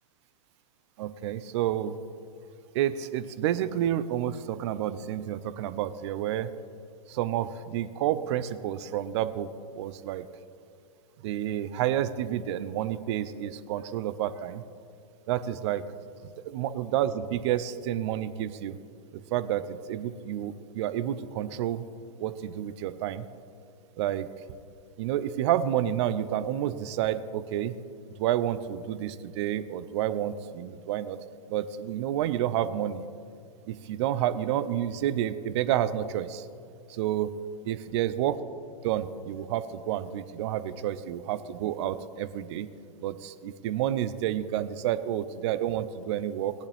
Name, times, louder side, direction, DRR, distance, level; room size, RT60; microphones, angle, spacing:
voice 1, 1.0-2.0 2.7-6.5 7.1-9.5 9.8-10.3 11.2-14.6 15.3-15.8 16.5-18.7 19.1-21.8 22.2-23.2 24.0-24.3 25.0-27.8 28.2-31.2 31.5-33.0 33.7-36.5 36.9-37.3 37.7-38.4 38.8-42.7 43.0-46.5, right 11 dB, 55° right, 14 dB, 0.6 m, -29 dB
17.0 x 10.5 x 3.5 m, 2.4 s
hypercardioid pair, 120°, 18 cm